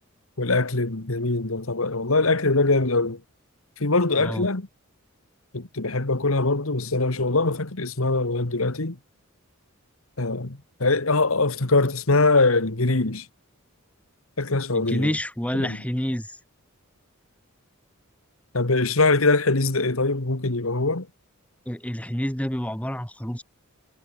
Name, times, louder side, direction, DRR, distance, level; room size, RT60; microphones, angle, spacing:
voice 1, 0.4-3.2 3.8-4.7 5.5-9.0 10.2-13.3 14.4-15.2 15.5-15.8 18.5-21.1, left 3 dB, 75° left, 1.9 m, -22 dB
voice 2, 14.7-16.4 21.7-23.4, equal, 5° left, 2.7 m, -28 dB
head